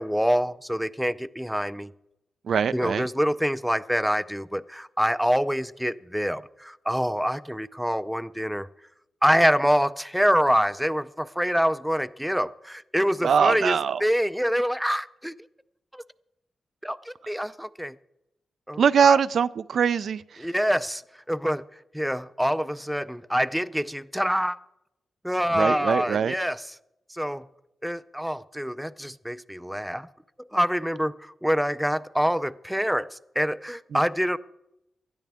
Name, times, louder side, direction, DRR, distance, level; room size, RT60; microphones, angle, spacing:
voice 1, 0.0-1.9 2.7-8.7 9.2-15.3 15.9-16.0 16.8-17.9 18.7-19.2 20.4-21.0 21.3-21.6 21.9-24.6 25.2-26.6 27.1-27.5 27.8-30.1 30.4-34.4, equal, ahead, 0.4 m, -26 dB
voice 2, 2.5-3.1 13.2-14.0 18.8-20.4 25.5-26.3 33.9-34.0, right 7 dB, 65° right, 0.4 m, -22 dB
19.0 x 13.0 x 3.6 m
wide cardioid pair, 125°, 0 cm